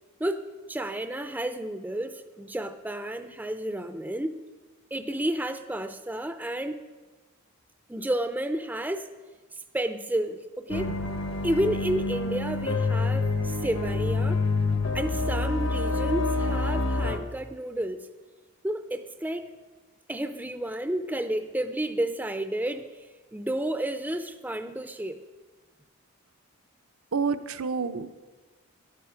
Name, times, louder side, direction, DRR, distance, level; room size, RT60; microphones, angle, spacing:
voice 1, 0.7-4.4 4.9-6.9 7.9-9.1 9.5-10.9 11.4-14.4 14.9-18.1 18.6-19.5 20.1-22.9 23.3-25.2, right 1 dB, 10° right, 9 dB, 0.4 m, -31 dB
sound 1, 10.7-17.2, left 3 dB, 55° left, 1.0 m, -27 dB
voice 2, 27.1-28.1, right 5 dB, 75° right, 9 dB, 0.6 m, -29 dB
12.5 x 11.0 x 5.0 m, 1.3 s
head